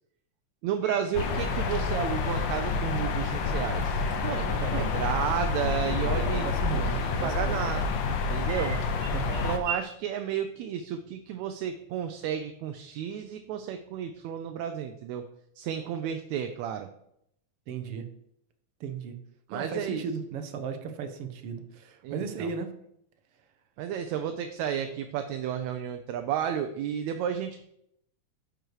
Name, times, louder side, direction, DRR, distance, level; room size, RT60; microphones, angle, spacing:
voice 1, 0.6-6.5 6.8-6.9 7.2-7.9 8.3-8.8 9.4-15.2 15.6-16.9 19.5-20.0 22.0-22.5 23.8-27.6, right 9 dB, 80° right, 7 dB, 1.9 m, -32 dB
sound 1, 0.8-9.8, right 4 dB, 30° right, 2.8 m, -44 dB
sound 2, 1.1-9.6, left 4 dB, 80° left, 1.0 m, -28 dB
voice 2, 4.6-4.9 6.1-7.6 9.1-9.5 17.7-18.1 18.8-19.2 19.5-22.7, right 6 dB, 65° right, 8 dB, 1.6 m, -36 dB
10.0 x 6.3 x 4.8 m, 0.75 s
omnidirectional pair, 3.3 m